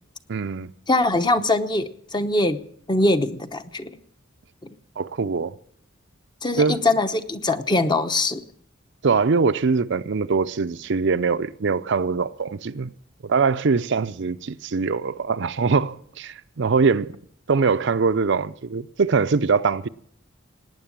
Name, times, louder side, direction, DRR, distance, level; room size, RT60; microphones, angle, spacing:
voice 1, 0.3-0.7 5.0-5.6 6.6-6.8 9.0-12.9 13.2-17.1 17.5-19.9, right 4 dB, 60° right, 0.5 m, -22 dB
voice 2, 0.9-2.6 2.9-3.9 6.4-8.4, left 2 dB, 20° left, 0.9 m, -22 dB
18.5 x 9.7 x 7.3 m
head